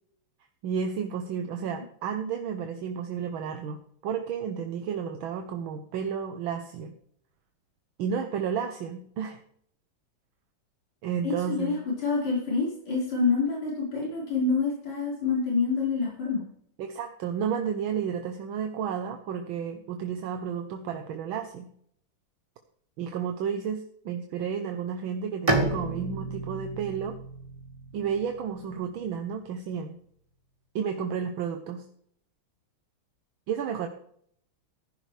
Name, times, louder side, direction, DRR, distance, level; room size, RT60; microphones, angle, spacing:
voice 1, 0.6-7.0 8.0-9.4 11.0-11.8 16.8-21.7 23.0-27.2 27.9-30.0 30.8-31.8 33.5-33.9, right 7 dB, 75° right, 6 dB, 1.6 m, -32 dB
voice 2, 11.2-16.5, left 4 dB, 75° left, -5 dB, 5.5 m, -27 dB
Bowed string instrument, 25.5-29.1, right 2 dB, 20° right, 1.4 m, -31 dB
15.0 x 11.0 x 3.3 m, 0.66 s
omnidirectional pair, 2.3 m